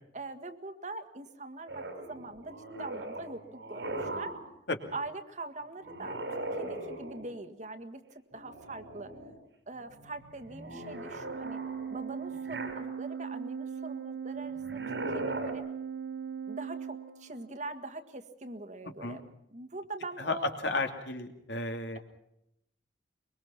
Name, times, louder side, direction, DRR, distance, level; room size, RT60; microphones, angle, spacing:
voice 1, 0.1-3.4 3.7-4.3 4.9-9.1 9.7-11.6 11.9-15.6 16.5-19.2 19.5-20.5, right 2 dB, 45° right, 8 dB, 1.8 m, -43 dB
sound 1, 1.7-4.5 5.8-7.4 8.3-9.3 9.7-13.2 14.5-15.5, right 2 dB, 90° right, 5.1 m, -40 dB
Organ, 11.2-17.7, right 7 dB, 65° right, 1.0 m, -39 dB
voice 2, 20.2-22.0, left 2 dB, 75° left, 5 dB, 2.8 m, -33 dB
23.5 x 22.5 x 5.9 m, 0.79 s
head